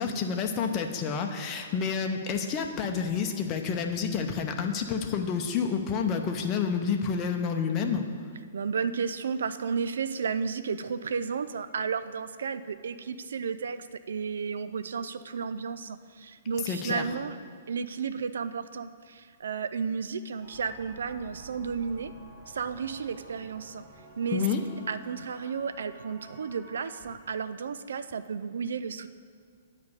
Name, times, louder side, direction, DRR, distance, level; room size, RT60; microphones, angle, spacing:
voice 1, 0.0-8.0 16.6-17.0 24.3-24.6, left 6 dB, 30° left, 3 dB, 0.7 m, -29 dB
voice 2, 8.5-17.4 17.7-22.1 22.5-23.8 24.2-24.4 24.9-29.1, right 6 dB, 60° right, 12 dB, 0.4 m, -33 dB
sound 1, 20.4-27.2, right 1 dB, 25° right, 1.4 m, -51 dB
9.4 x 5.3 x 6.8 m, 2.2 s
figure-of-eight pair, 115°, 0 cm